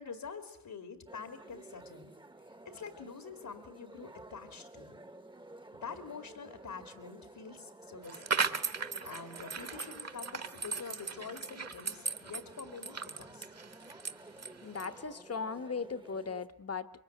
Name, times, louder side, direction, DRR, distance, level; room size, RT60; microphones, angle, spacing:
voice 1, 0.0-2.1 2.6-5.0 5.8-8.5 9.0-13.5, left 5 dB, 75° left, 8 dB, 2.3 m, -46 dB
sound 1, 1.1-16.5, right 2 dB, 15° right, 1.0 m, -53 dB
sound 2, 8.0-15.0, right 5 dB, 45° right, 1.4 m, -37 dB
voice 2, 14.6-16.9, left 5 dB, 45° left, 13 dB, 1.2 m, -38 dB
25.5 x 23.5 x 9.2 m, 0.79 s
wide cardioid pair, 135°, 35 cm